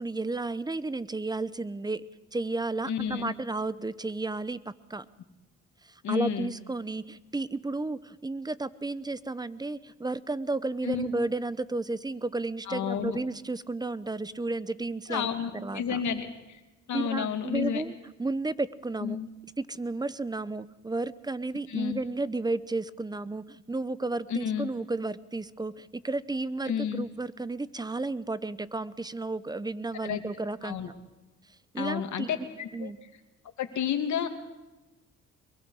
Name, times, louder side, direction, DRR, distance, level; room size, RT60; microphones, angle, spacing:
voice 1, 0.0-2.1 2.3-5.1 5.8-15.3 15.5-16.0 16.9-19.2 19.6-30.8 31.7-32.5 32.7-33.0, right 2 dB, 15° right, 17 dB, 0.8 m, -33 dB
voice 2, 2.9-3.3 6.0-6.5 10.8-11.1 12.7-13.2 15.1-16.6 16.9-17.8 19.0-19.3 21.7-22.0 24.3-24.7 26.6-27.1 30.0-30.2 30.6-30.9 31.8-32.9 33.6-34.3, left 8 dB, 70° left, 6 dB, 2.5 m, -31 dB
23.5 x 22.5 x 4.9 m, 1.1 s
cardioid pair, 90°, 30 cm